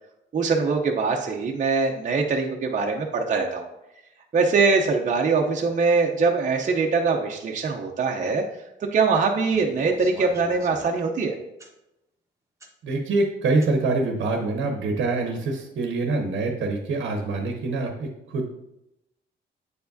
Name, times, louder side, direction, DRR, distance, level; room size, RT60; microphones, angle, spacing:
voice 1, 0.3-3.7 4.3-8.4 8.8-11.4, right 4 dB, 40° right, 1 dB, 0.7 m, -23 dB
sound 1, 9.5-11.0 11.6-11.7 12.6-12.7 13.6-13.7, right 2 dB, 15° right, 1.1 m, -42 dB
voice 2, 12.8-18.6, right 3 dB, 70° right, 3 dB, 0.9 m, -25 dB
8.3 x 4.7 x 2.7 m, 0.89 s
cardioid pair, 90°, 20 cm